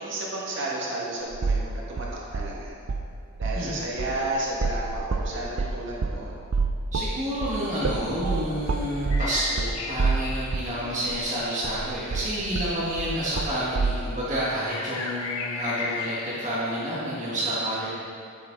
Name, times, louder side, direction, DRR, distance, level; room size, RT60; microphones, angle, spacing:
voice 1, 0.0-2.1 2.3-2.7 3.4-6.4 10.8-11.0, right 1 dB, 55° right, -5 dB, 1.8 m, -32 dB
sound 1, 1.3-1.7 2.0-3.1 3.4-3.7 4.0-10.8 11.1-11.2 11.6-14.0, right 4 dB, 75° right, 0.5 m, -28 dB
voice 2, 6.9-17.9, equal, 35° right, -8 dB, 1.5 m, -29 dB
sound 2, 9.1-11.5 14.4-16.2, left 4 dB, 85° left, 0.9 m, -35 dB
10.0 x 7.8 x 3.8 m, 2.4 s
head